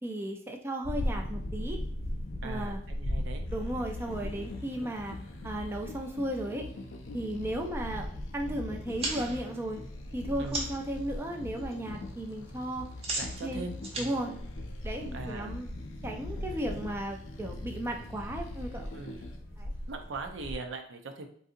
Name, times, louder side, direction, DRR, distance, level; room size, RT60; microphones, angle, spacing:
voice 1, 0.0-1.8 2.4-2.8 3.5-5.2 5.4-6.7 7.1-8.1 8.3-9.8 10.1-12.8 13.4-13.7 14.0-14.4 14.8-15.7 16.0-18.9 19.6-19.7, right 1 dB, 15° right, 1 dB, 0.4 m, -35 dB
sound 1, 0.8-20.6, left 1 dB, 55° left, 0.7 m, -40 dB
voice 2, 2.4-3.4 7.8-8.0 10.4-10.6 13.1-14.2 15.1-15.5 18.9-19.3 19.9-21.3, right 3 dB, 70° right, 5 dB, 0.5 m, -40 dB
sound 2, 3.4-19.4, left 2 dB, 80° left, 0.5 m, -44 dB
sound 3, 9.0-10.9 11.3-11.8 12.0-15.3, right 2 dB, 30° right, 0.9 m, -38 dB
3.8 x 2.7 x 2.5 m, 0.63 s
head